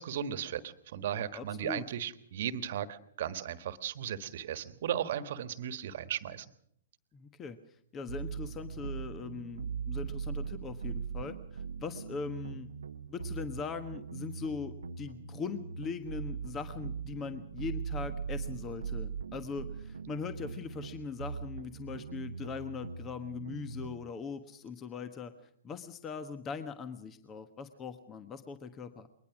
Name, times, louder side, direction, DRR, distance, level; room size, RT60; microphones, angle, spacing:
voice 1, 0.0-6.4, right 9 dB, 60° right, 12 dB, 1.5 m, -36 dB
voice 2, 1.3-1.8 7.1-7.6 7.9-12.7 13.1-25.3 25.6-29.1, left 5 dB, 25° left, 11 dB, 1.3 m, -41 dB
sound 1, 8.1-24.0, right 6 dB, 80° right, 0.9 m, -40 dB
22.0 x 19.5 x 6.1 m, 0.68 s
hypercardioid pair, 115°, 0 cm